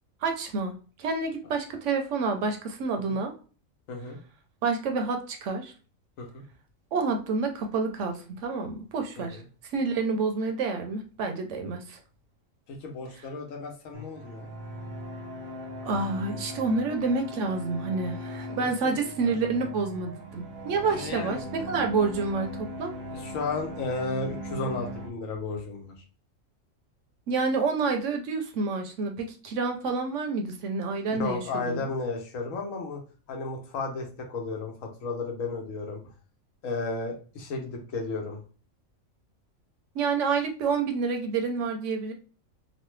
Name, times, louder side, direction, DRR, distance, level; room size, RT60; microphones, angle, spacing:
voice 1, 0.2-3.3 4.6-5.7 6.9-9.4 9.7-12.0 15.8-22.9 27.3-31.8 39.9-42.1, right 4 dB, 70° right, 5 dB, 0.9 m, -28 dB
voice 2, 12.7-14.5 18.6-19.3 20.9-21.4 23.1-25.9 31.2-33.0 33.3-36.0 36.6-38.4, left 3 dB, 75° left, 2 dB, 1.2 m, -34 dB
sound 1, 13.9-25.1, equal, 90° right, 1.3 m, -39 dB
3.0 x 2.1 x 3.1 m, 0.38 s
omnidirectional pair, 1.4 m